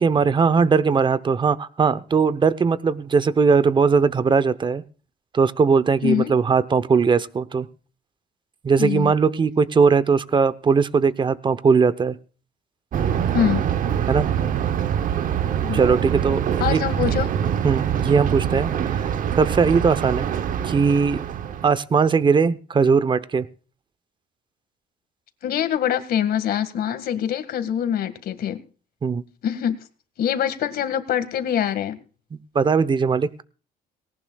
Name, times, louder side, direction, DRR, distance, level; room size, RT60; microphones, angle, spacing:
voice 1, 0.0-4.8 5.3-7.7 8.6-12.2 14.1-14.3 15.7-16.8 17.1-17.2 17.6-19.1 19.4-20.3 20.6-21.2 21.6-23.5 29.0-29.2 32.3-33.3, right 5 dB, 30° right, 16 dB, 0.9 m, -19 dB
voice 2, 8.8-9.1 13.3-13.6 15.6-15.8 16.6-17.3 25.4-28.6 29.4-29.8 30.2-32.0, left 9 dB, 65° left, 11 dB, 1.9 m, -24 dB
Thunder, 12.9-21.7, right 9 dB, 50° right, 1.0 m, -24 dB
18.5 x 18.0 x 2.4 m, 0.38 s
cardioid pair, 110°, 17 cm